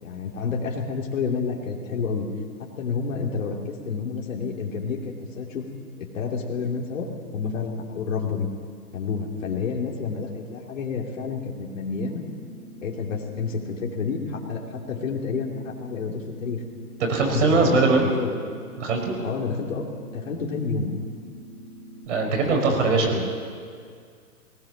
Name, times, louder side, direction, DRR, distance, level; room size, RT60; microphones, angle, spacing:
voice 1, 0.0-2.3 2.6-5.6 6.0-8.5 8.9-12.2 12.8-16.6 17.2-18.3 19.2-19.9 20.1-21.0 22.4-23.3, left 5 dB, 55° left, 0 dB, 2.9 m, -29 dB
sound 1, 12.1-22.1, equal, 30° left, 4.3 m, -45 dB
voice 2, 17.0-18.1 18.8-19.1 22.1-23.2, right 3 dB, 50° right, 2 dB, 5.5 m, -21 dB
19.0 x 19.0 x 7.3 m, 2.2 s
hypercardioid pair, 140°, 45 cm